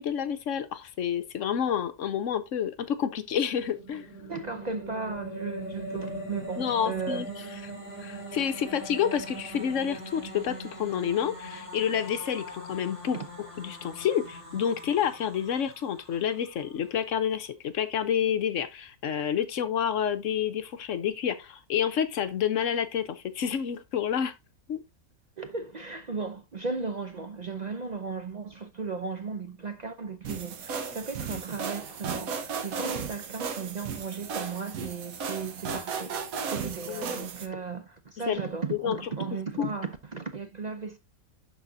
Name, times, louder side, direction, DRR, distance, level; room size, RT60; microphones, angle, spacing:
voice 1, 0.0-4.1 6.6-7.3 8.0-13.2 13.6-24.3 24.7-24.8 36.9-37.3 38.3-38.4 38.7-39.0 39.6-39.7, left 8 dB, 65° left, 1.0 m, -29 dB
sound 1, 3.3-16.6, equal, 10° left, 3.1 m, -41 dB
voice 2, 4.2-7.3 13.1-13.3 25.4-41.0, right 4 dB, 55° right, 0.4 m, -36 dB
sound 2, 30.2-37.5, right 6 dB, 75° right, 1.3 m, -35 dB
12.0 x 4.1 x 2.6 m
omnidirectional pair, 1.5 m